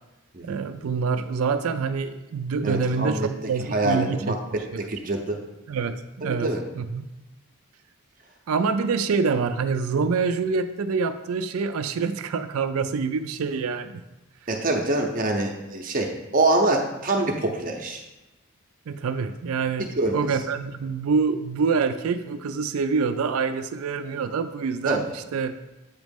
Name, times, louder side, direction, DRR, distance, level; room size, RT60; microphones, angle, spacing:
voice 1, 0.4-4.3 4.7-4.9 5.7-6.5 6.8-7.1 8.5-14.0 18.9-25.5, right 5 dB, 80° right, 10 dB, 0.4 m, -26 dB
voice 2, 2.6-3.3 3.7-4.6 4.9-5.4 6.2-6.6 14.5-18.0 20.0-20.2 24.9-25.0, right 2 dB, 40° right, 2 dB, 0.7 m, -25 dB
7.9 x 3.1 x 5.2 m, 1.0 s
head